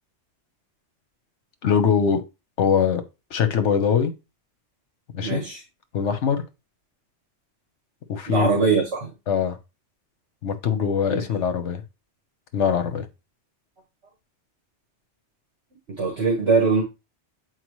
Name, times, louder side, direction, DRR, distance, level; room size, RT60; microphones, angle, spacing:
voice 1, 1.6-2.2 2.6-3.0 3.3-4.1 5.1-5.4 5.9-6.4 8.1-8.7 9.3-9.6 10.4-11.8 12.5-13.1, left 7 dB, 75° left, 1.2 m, -22 dB
voice 2, 5.2-5.6 8.3-9.1 11.1-11.3 15.9-16.8, right 4 dB, 65° right, 1.7 m, -22 dB
7.8 x 4.5 x 3.1 m
omnidirectional pair, 1.2 m